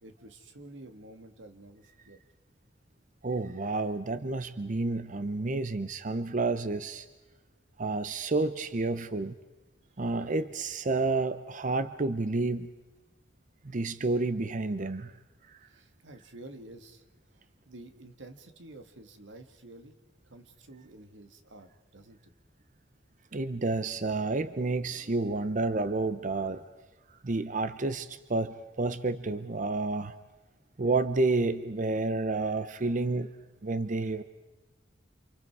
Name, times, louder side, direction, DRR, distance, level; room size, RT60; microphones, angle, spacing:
voice 1, 0.0-2.2 15.6-17.0 17.3-19.9 20.3-22.3, right 2 dB, 90° right, 7 dB, 1.9 m, -50 dB
voice 2, 3.2-7.1 7.8-9.3 10.0-12.7 13.6-15.1 23.3-26.6 27.2-30.1 30.8-33.3 33.6-34.2, right 3 dB, 45° right, 12 dB, 0.7 m, -30 dB
29.0 x 28.0 x 4.7 m, 1.2 s
head